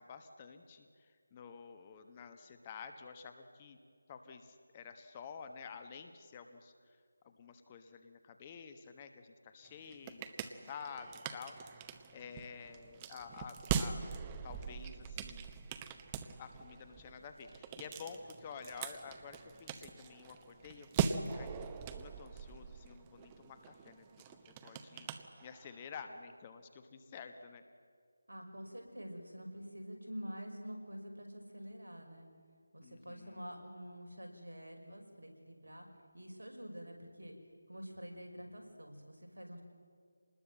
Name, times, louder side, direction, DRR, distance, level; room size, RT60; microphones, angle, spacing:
voice 1, 0.0-3.8 4.1-7.0 7.2-11.8 12.1-14.0 14.4-15.5 16.4-24.1 24.6-25.1 25.4-27.6 32.8-33.4, left 6 dB, 20° left, 7 dB, 1.2 m, -50 dB
sound 1, 9.6-25.9, right 7 dB, 15° right, 0.8 m, -42 dB
voice 2, 28.3-32.3 32.7-35.9 36.1-37.3 37.7-39.6, equal, 80° right, 3 dB, 5.7 m, -47 dB
26.5 x 20.0 x 7.7 m, 2.1 s
figure-of-eight pair, 160°, 0 cm